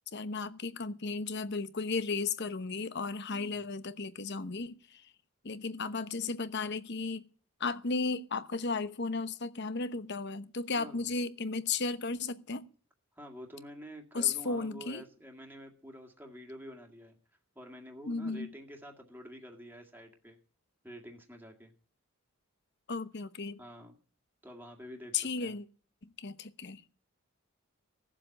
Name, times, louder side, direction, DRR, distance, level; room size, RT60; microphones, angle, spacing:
voice 1, 0.1-5.1 5.4-7.3 7.6-12.7 14.1-15.0 18.0-18.5 22.9-23.6 25.1-25.7 26.0-26.8, left 4 dB, 50° left, 0.9 m, -34 dB
voice 2, 3.3-3.6 10.8-11.1 13.2-17.2 17.6-20.4 20.8-21.7 23.6-23.9 24.4-25.5, equal, 10° right, 2.0 m, -48 dB
17.0 x 7.5 x 8.7 m
head